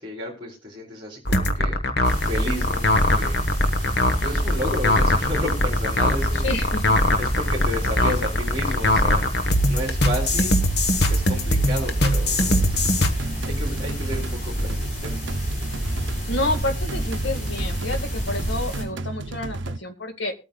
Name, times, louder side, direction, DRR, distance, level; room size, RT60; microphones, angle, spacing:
voice 1, 0.0-1.8 2.2-3.4 4.2-6.5 7.2-9.3 9.7-10.5 11.1-12.9 13.4-15.5, left 1 dB, 25° right, -5 dB, 3.8 m, -32 dB
sound 1, 1.3-13.1, left 1 dB, 55° left, 1.1 m, -21 dB
sound 2, 2.0-18.8, equal, 35° left, 4.3 m, -29 dB
voice 2, 6.3-7.0 8.0-8.1 13.0-13.5 16.3-20.3, left 2 dB, 75° left, 6 dB, 1.8 m, -29 dB
sound 3, 12.4-19.8, right 2 dB, 70° right, 0.7 m, -33 dB
21.0 x 8.9 x 2.3 m, 0.32 s
head